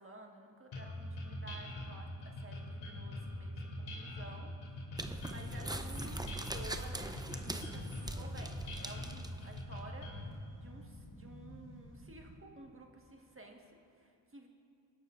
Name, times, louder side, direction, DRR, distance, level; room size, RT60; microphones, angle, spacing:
voice 1, 0.0-4.5 4.9-14.5, right 2 dB, 25° right, 1 dB, 1.6 m, -53 dB
sound 1, 0.7-10.3, left 1 dB, 80° left, 2.9 m, -43 dB
sound 2, 5.0-9.6, right 1 dB, 10° right, 0.7 m, -43 dB
sound 3, 7.2-12.3, equal, 65° left, 2.8 m, -53 dB
20.5 x 11.5 x 2.5 m, 2.4 s
cardioid pair, 55°, 47 cm